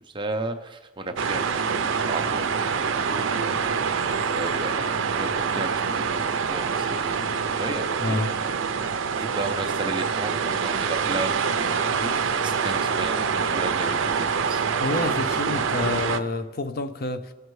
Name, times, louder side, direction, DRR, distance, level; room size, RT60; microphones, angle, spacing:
voice 1, 0.1-8.2 9.2-14.7 15.8-15.9, right 2 dB, 25° right, 0.7 m, -34 dB
sound 1, 1.2-16.2, right 6 dB, 75° right, 0.5 m, -25 dB
voice 2, 8.0-8.3 14.7-17.3, left 2 dB, 50° left, 0.5 m, -28 dB
17.5 x 6.5 x 3.1 m
head